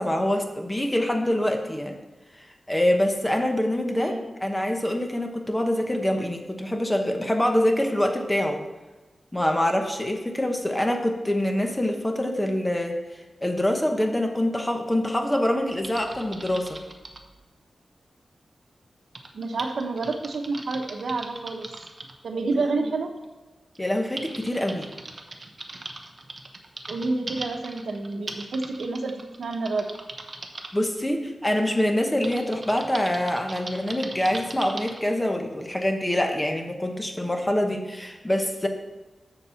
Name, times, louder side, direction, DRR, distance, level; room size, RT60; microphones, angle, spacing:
voice 1, 0.0-2.0 2.7-4.1 4.4-8.6 9.3-13.0 13.4-16.8 23.8-24.9 30.7-38.7, left 1 dB, 10° left, 3 dB, 1.0 m, -25 dB
voice 2, 3.9-4.3 19.3-21.7 22.2-23.1 26.9-30.0, right 3 dB, 85° right, 4 dB, 1.0 m, -29 dB
Typing, 15.8-17.3 19.2-22.1 23.2-23.3 23.8-30.7 32.2-35.0, right 2 dB, 40° right, 0.9 m, -39 dB
7.3 x 6.7 x 5.6 m, 1.2 s
wide cardioid pair, 135°, 0 cm